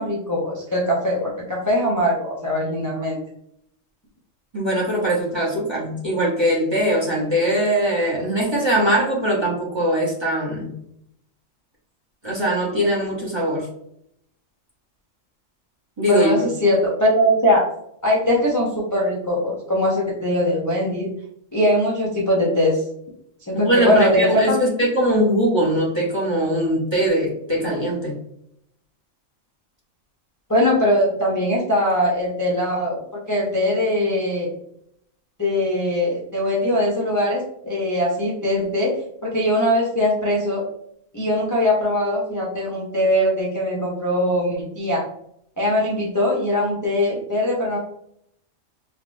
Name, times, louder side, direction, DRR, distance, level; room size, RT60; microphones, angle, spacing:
voice 1, 0.0-3.2 16.1-17.7 18.0-21.1 21.5-22.8 23.5-24.6 30.5-33.0 33.3-34.5 35.4-39.0 39.2-40.6 41.1-45.1 45.6-47.8, left 1 dB, 25° left, -5 dB, 0.4 m, -21 dB
voice 2, 4.5-10.7 12.2-13.7 16.0-16.3 23.5-28.1, equal, 25° right, -3 dB, 0.7 m, -21 dB
3.5 x 2.4 x 2.4 m, 0.73 s
omnidirectional pair, 1.3 m